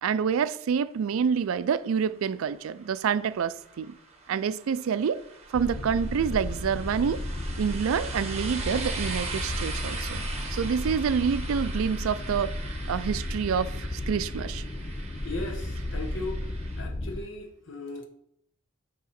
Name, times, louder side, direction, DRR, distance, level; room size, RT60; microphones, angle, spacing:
voice 1, 0.0-3.9 4.3-5.2 5.5-7.2 7.6-10.2 10.5-12.5 12.9-14.6, right 7 dB, 80° right, 0.3 m, -27 dB
sound 1, 1.8-16.8, right 4 dB, 30° right, 1.1 m, -41 dB
sound 2, 5.5-17.2, left 1 dB, 15° left, 0.4 m, -34 dB
voice 2, 15.2-16.5 16.8-18.1, left 2 dB, 60° left, 1.0 m, -37 dB
9.6 x 3.6 x 4.2 m
head